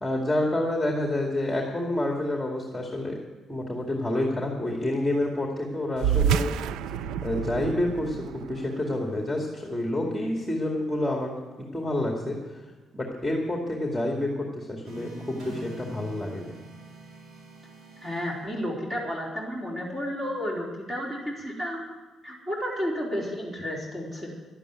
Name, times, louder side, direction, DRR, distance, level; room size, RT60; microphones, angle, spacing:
voice 1, 0.0-3.2 3.5-6.5 7.2-11.3 11.7-12.6 12.9-16.5, left 1 dB, 5° left, 0 dB, 2.3 m, -28 dB
sound 1, 6.0-10.8, right 8 dB, 90° right, 0.4 m, -30 dB
sound 2, 14.8-19.1, right 2 dB, 75° right, 3.8 m, -44 dB
voice 2, 18.0-21.9 22.2-24.3, equal, 25° right, -3 dB, 4.0 m, -32 dB
11.5 x 9.0 x 9.3 m, 1.3 s
cardioid pair, 90°, 0 cm